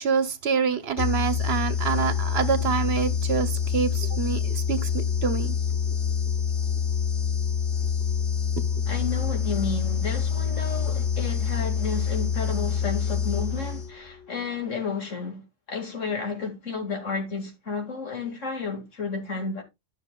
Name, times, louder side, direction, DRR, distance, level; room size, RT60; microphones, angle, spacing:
voice 1, 0.0-5.5 5.9-6.0 8.7-8.9, right 6 dB, 60° right, 1.1 m, -26 dB
sound 1, 1.0-14.1, left 7 dB, 70° left, 1.2 m, -26 dB
voice 2, 8.9-19.6, left 4 dB, 85° left, 2.6 m, -32 dB
12.5 x 6.4 x 2.3 m
omnidirectional pair, 1.3 m